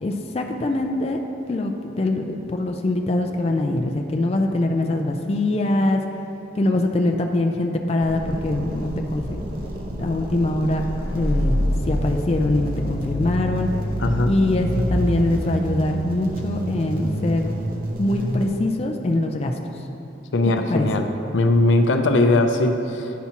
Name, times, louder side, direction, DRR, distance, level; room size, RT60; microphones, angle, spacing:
voice 1, 0.0-1.2 1.5-6.0 6.6-9.4 10.0-13.7 14.3-17.5 18.0-19.5 20.7-20.9, left 2 dB, 35° left, 3 dB, 0.4 m, -23 dB
sound 1, 8.0-18.5, equal, 50° right, 0.8 m, -27 dB
voice 2, 14.0-14.3 20.3-21.0 21.3-23.1, left 2 dB, 85° left, 6 dB, 0.5 m, -19 dB
9.3 x 5.8 x 2.9 m, 2.9 s
head